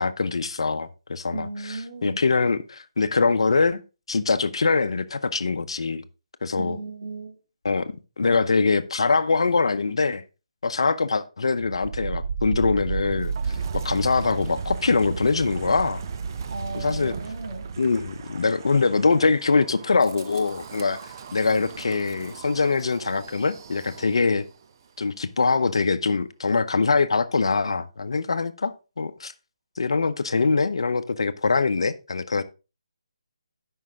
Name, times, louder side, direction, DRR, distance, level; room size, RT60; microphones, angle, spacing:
voice 1, 0.0-3.8 4.1-6.0 6.4-6.8 7.6-10.2 10.6-16.0 16.8-17.1 17.8-21.0 21.3-24.4 25.0-29.3 29.8-32.4, left 4 dB, 65° left, 0.7 m, -23 dB
voice 2, 1.3-2.2 6.5-7.4 16.5-17.7, right 2 dB, 55° right, 2.9 m, -35 dB
Wind, 11.5-24.5, right 5 dB, 40° right, 0.7 m, -34 dB
12.0 x 5.5 x 3.5 m
figure-of-eight pair, 150°, 3 cm